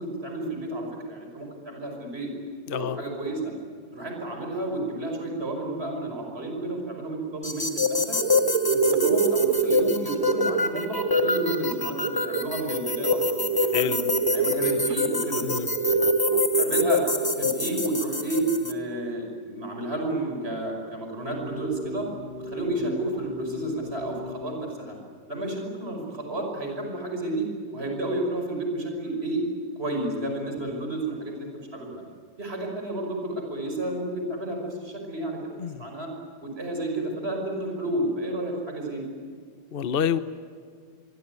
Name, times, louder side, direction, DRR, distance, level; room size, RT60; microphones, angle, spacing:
voice 1, 0.0-2.3 2.7-3.5 3.9-8.2 8.6-13.5 13.7-14.0 14.3-15.5 16.6-17.0 17.3-22.1 22.4-25.0 25.3-27.5 27.7-29.4 29.8-32.0 32.4-35.4 35.8-36.1 36.4-39.1, right 1 dB, 30° right, 2 dB, 5.8 m, -31 dB
sound 1, 7.4-18.7, left 4 dB, 15° left, 1.0 m, -27 dB
sound 2, 7.6-7.8 8.1-17.5, right 6 dB, 80° right, 1.9 m, -27 dB
sound 3, 21.2-24.4, equal, 85° left, 4.6 m, -37 dB
voice 2, 39.7-40.2, left 8 dB, 45° left, 14 dB, 0.7 m, -27 dB
25.0 x 23.0 x 9.6 m, 2.1 s
omnidirectional pair, 2.1 m